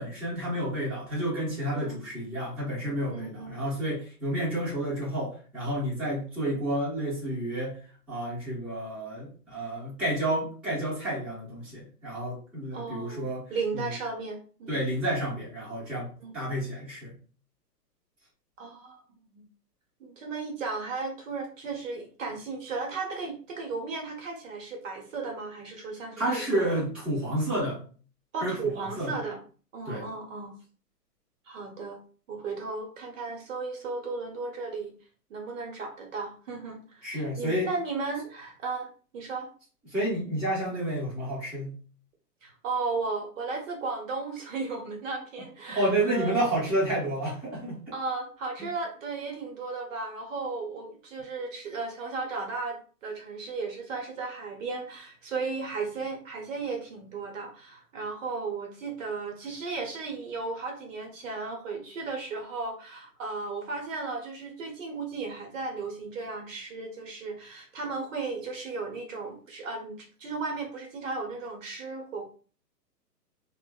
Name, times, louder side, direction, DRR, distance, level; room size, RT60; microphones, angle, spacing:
voice 1, 0.0-7.8 8.1-13.8 14.7-17.1 26.2-27.8 28.4-29.2 29.8-30.1 37.0-37.7 39.9-41.7 45.7-47.8 48.6-48.7, right 1 dB, ahead, -10 dB, 0.9 m, -30 dB
voice 2, 3.1-3.6 12.7-14.8 16.2-16.4 18.6-19.0 19.3-19.4 20.0-26.7 28.3-29.4 29.7-30.5 31.5-32.0 32.3-34.9 35.3-38.9 39.1-39.5 42.4-46.4 47.9-72.2, right 4 dB, 50° right, 2 dB, 0.8 m, -35 dB
3.3 x 2.1 x 2.2 m, 0.40 s
hypercardioid pair, 145°, 49 cm